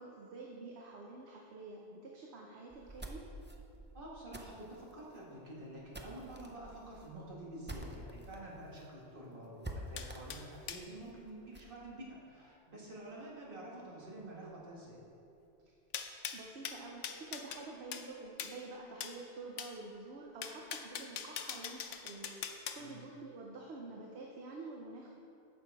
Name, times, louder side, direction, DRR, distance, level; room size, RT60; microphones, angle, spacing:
voice 1, 0.0-3.2 16.3-22.3 22.7-25.1, right 3 dB, 65° right, -1 dB, 1.1 m, -48 dB
sound 1, 2.7-8.4 8.7-8.8 9.1-9.2 9.6-11.7, right 1 dB, 15° right, 0.4 m, -48 dB
voice 2, 3.9-15.0 22.8-23.0, right 1 dB, 50° right, -4 dB, 1.9 m, -48 dB
sound 2, 10.0-10.8 15.9-17.6 17.9-18.1 18.4-18.6 19.0-19.2 19.6-19.7 20.4-22.8, left 8 dB, 90° left, 1.0 m, -42 dB
10.0 x 6.5 x 4.8 m, 2.7 s
omnidirectional pair, 1.2 m